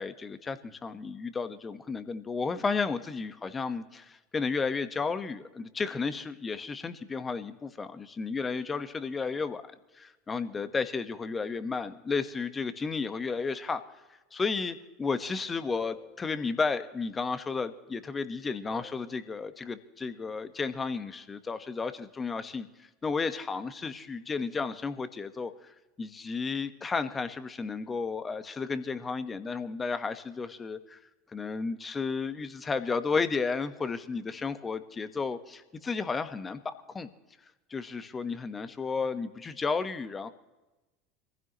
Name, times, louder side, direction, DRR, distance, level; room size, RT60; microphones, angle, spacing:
voice 1, 0.0-9.6 9.9-13.8 14.3-25.7 26.0-31.0 31.3-37.1 37.7-40.3, left 4 dB, 25° left, 11 dB, 1.3 m, -33 dB
sound 1, 15.8-16.9 18.7-19.5, right 1 dB, 75° left, 4.4 m, -54 dB
26.0 x 15.5 x 3.1 m, 1.1 s
hypercardioid pair, 80°, 0 cm